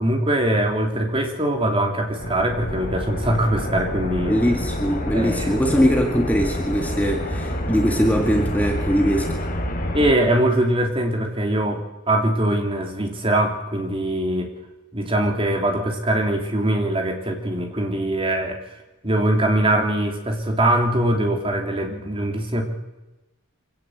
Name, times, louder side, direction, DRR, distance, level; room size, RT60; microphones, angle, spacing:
voice 1, 0.0-4.4 5.1-5.5 9.9-14.5 14.9-18.6 19.0-22.6, right 1 dB, 25° right, 2 dB, 3.4 m, -22 dB
sound 1, 2.2-10.1, left 1 dB, 40° left, 4.2 m, -28 dB
voice 2, 4.3-9.4, equal, 5° left, 2 dB, 2.1 m, -21 dB
25.0 x 17.0 x 8.1 m, 1.0 s
head